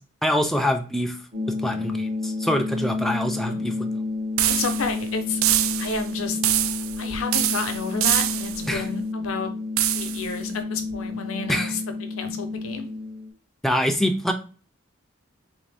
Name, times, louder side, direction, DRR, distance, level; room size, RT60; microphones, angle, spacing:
voice 1, 0.2-1.2 1.6-3.7 8.7-8.8 11.5-11.7 13.6-14.3, equal, ahead, 5 dB, 0.3 m, -24 dB
Wind Chime Tolling A, 1.3-13.3, left 3 dB, 45° right, 0.9 m, -30 dB
voice 2, 4.4-5.4 5.8-6.4 7.0-9.5 10.0-12.9, left 4 dB, 85° left, 7 dB, 0.6 m, -31 dB
sound 1, 4.4-5.0 5.4-6.1 6.4-7.0 7.3-8.7 9.8-10.3, right 13 dB, 90° right, 0.3 m, -24 dB
3.2 x 2.6 x 3.3 m, 0.37 s
head